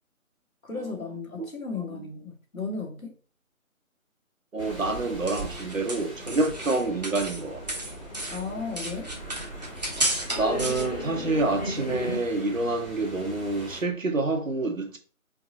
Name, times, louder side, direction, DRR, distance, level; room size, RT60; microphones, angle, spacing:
voice 1, 0.6-3.2 8.3-9.1, left 4 dB, 75° left, 1.8 m, -35 dB
voice 2, 4.5-7.6 10.4-15.0, right 2 dB, 65° right, 1.3 m, -27 dB
sound 1, 4.6-13.8, right 1 dB, ahead, 1.0 m, -43 dB
sound 2, 4.9-7.4 7.7-10.8, right 2 dB, 30° right, 0.8 m, -32 dB
sound 3, 6.2-12.2, left 1 dB, 30° left, 1.1 m, -38 dB
4.5 x 3.9 x 2.8 m
figure-of-eight pair, 155°, 42 cm